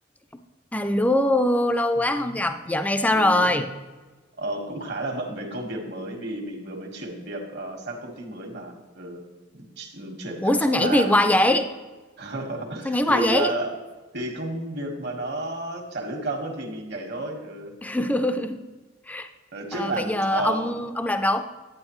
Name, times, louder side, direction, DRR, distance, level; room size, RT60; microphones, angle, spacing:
voice 1, 0.7-3.7 10.4-11.7 12.8-13.5 17.8-18.6 19.1-19.3 19.7-21.4, left 1 dB, 10° left, 8 dB, 0.4 m, -22 dB
voice 2, 2.0-2.4 3.1-3.6 4.4-9.2 9.5-11.4 12.2-13.7 14.1-17.7 19.5-20.8, right 2 dB, 60° right, 2 dB, 1.6 m, -32 dB
10.5 x 8.8 x 3.1 m, 1.3 s
head